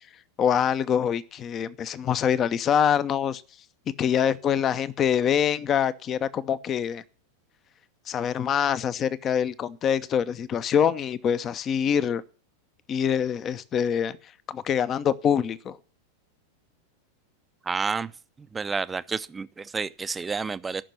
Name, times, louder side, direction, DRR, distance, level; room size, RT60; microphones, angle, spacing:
voice 1, 0.4-3.4 4.0-7.0 8.1-12.2 12.9-14.2 14.5-15.8, left 8 dB, 30° left, 0.7 m, -25 dB
voice 2, 17.7-18.1 18.5-20.8, right 5 dB, 15° right, 0.5 m, -30 dB
14.0 x 6.1 x 9.8 m
figure-of-eight pair, 90°, 0 cm